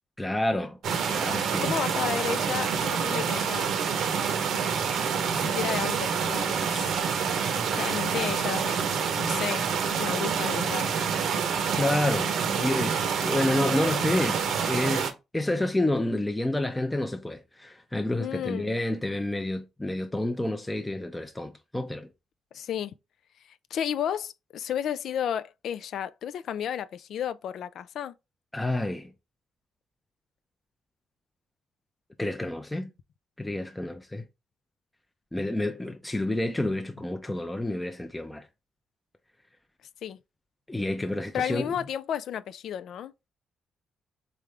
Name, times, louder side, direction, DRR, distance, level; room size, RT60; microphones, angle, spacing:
voice 1, 0.2-0.8 1.1-1.7 11.8-12.3 12.6-22.1 28.5-29.1 32.2-32.9 33.4-34.3 35.3-38.5 40.7-41.7, left 1 dB, 10° left, 0.5 m, -29 dB
sound 1, 0.8-15.1, right 6 dB, 75° right, 0.7 m, -27 dB
voice 2, 1.6-3.7 5.3-7.0 7.7-8.9 9.2-10.9 18.2-18.7 22.5-22.9 23.7-28.1 40.0-40.2 41.3-43.1, left 9 dB, 70° left, 0.3 m, -32 dB
3.7 x 3.3 x 3.3 m
cardioid pair, 90°, 0 cm